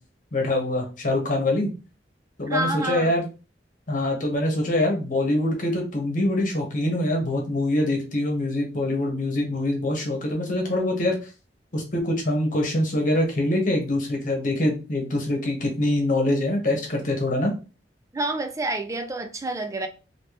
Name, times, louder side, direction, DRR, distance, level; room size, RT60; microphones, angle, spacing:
voice 1, 0.3-1.7 2.4-3.2 3.9-11.1 11.7-17.5, left 1 dB, 50° left, 1.1 m, -24 dB
voice 2, 2.4-3.1 18.1-19.9, right 2 dB, 20° right, 0.4 m, -28 dB
3.3 x 2.8 x 2.9 m
head